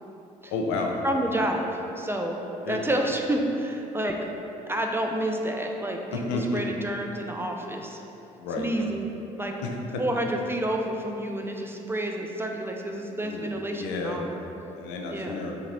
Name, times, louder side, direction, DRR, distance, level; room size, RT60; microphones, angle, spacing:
voice 1, 0.5-0.9 2.6-2.9 6.1-6.6 8.4-8.7 9.6-10.0 13.2-14.2 14.8-15.5, left 3 dB, 70° left, 1 dB, 0.4 m, -31 dB
voice 2, 1.0-2.4 2.7-4.1 4.7-8.0 8.6-9.1 9.4-9.5 10.0-14.2 15.1-15.4, right 1 dB, 15° right, 2 dB, 0.3 m, -29 dB
3.7 x 2.7 x 3.0 m, 3.0 s
hypercardioid pair, 50°, 18 cm